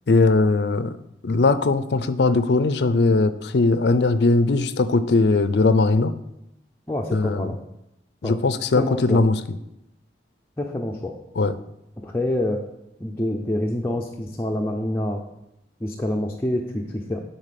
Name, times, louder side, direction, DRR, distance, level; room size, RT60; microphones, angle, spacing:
voice 1, 0.1-1.0 1.2-6.1 7.1-7.5 8.2-9.4 11.4-11.5, left 3 dB, 70° left, 12 dB, 0.5 m, -19 dB
voice 2, 6.9-7.6 8.2-8.4 8.8-9.2 10.6-11.2 12.0-12.6 13.0-15.2 15.8-17.2, left 1 dB, 15° left, -1 dB, 0.6 m, -26 dB
9.8 x 4.2 x 5.9 m, 0.86 s
head